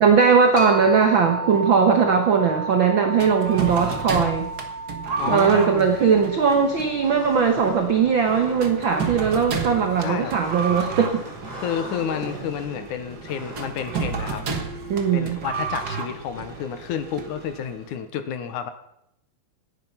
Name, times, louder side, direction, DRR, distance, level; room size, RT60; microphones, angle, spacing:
voice 1, 0.0-4.5 5.3-11.2 14.9-15.4, right 6 dB, 70° right, 5 dB, 1.1 m, -19 dB
sound 1, 0.6-10.0, right 3 dB, 30° left, 1.6 m, -34 dB
sound 2, 3.2-17.9, right 5 dB, 40° right, 1.4 m, -32 dB
voice 2, 5.2-5.9 10.0-10.3 11.6-14.4 15.1-18.7, left 8 dB, 70° left, 10 dB, 2.2 m, -30 dB
sound 3, 6.9-13.9, equal, 10° right, 4.4 m, -41 dB
17.5 x 10.5 x 5.6 m, 0.79 s
omnidirectional pair, 4.1 m